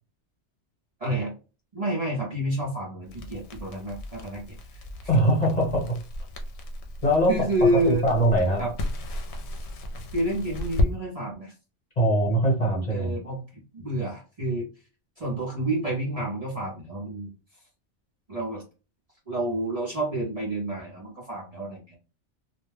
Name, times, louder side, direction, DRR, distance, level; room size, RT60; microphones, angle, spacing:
voice 1, 1.0-1.3 1.7-4.4 4.7-4.8 7.3-8.1 8.6-8.7 10.1-11.5 12.9-14.7 15.2-17.3 18.3-18.6 19.3-22.0, right 1 dB, 40° right, -4 dB, 0.7 m, -29 dB
Crackle, 3.0-10.9, left 1 dB, 70° left, 0.9 m, -33 dB
voice 2, 5.1-6.0 7.0-7.5 8.0-8.7 12.0-13.2, right 1 dB, 35° left, -3 dB, 1.2 m, -22 dB
2.4 x 2.2 x 3.2 m, 0.32 s
omnidirectional pair, 1.2 m